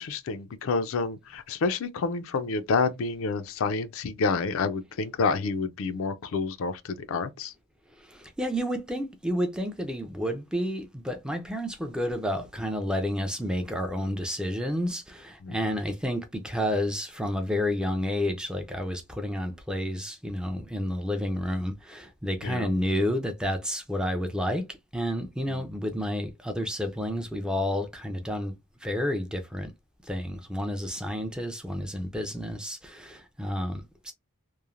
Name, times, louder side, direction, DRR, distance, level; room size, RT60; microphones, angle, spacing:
voice 1, 0.0-7.5 15.4-15.6 22.4-22.7 25.5-25.6, left 4 dB, 65° left, 0.4 m, -29 dB
voice 2, 8.0-24.7 24.9-28.5 28.8-29.7 30.0-34.1, equal, 5° right, 0.3 m, -30 dB
3.0 x 2.0 x 2.4 m
head